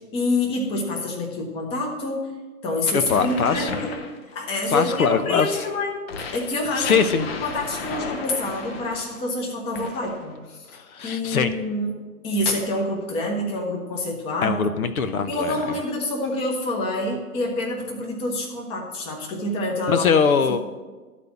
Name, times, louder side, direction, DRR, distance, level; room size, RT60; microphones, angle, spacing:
voice 1, 0.1-2.3 2.6-4.0 4.3-6.0 6.3-10.7 11.0-12.0 12.2-14.6 15.3-20.1 20.5-20.6, left 2 dB, 10° left, 1 dB, 0.9 m, -27 dB
voice 2, 2.9-3.8 4.7-5.6 6.8-7.3 10.7-11.5 14.4-15.8 19.9-20.6, left 6 dB, 65° left, 10 dB, 0.9 m, -22 dB
sound 1, 3.1-5.4 6.1-9.2 9.7-10.3, left 4 dB, 40° left, 0.9 m, -35 dB
12.0 x 4.2 x 7.1 m, 1.3 s
hypercardioid pair, 140°, 46 cm